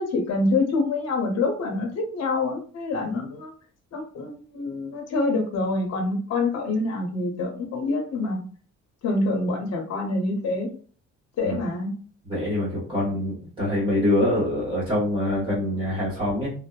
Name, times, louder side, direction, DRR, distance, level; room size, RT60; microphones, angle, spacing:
voice 1, 0.0-3.5 3.9-8.4 9.0-10.7 11.4-11.9, left 2 dB, 60° left, 3 dB, 0.7 m, -26 dB
voice 2, 12.3-16.5, left 1 dB, 15° right, -8 dB, 1.2 m, -25 dB
2.6 x 2.0 x 2.3 m, 0.43 s
cardioid pair, 90°, 30 cm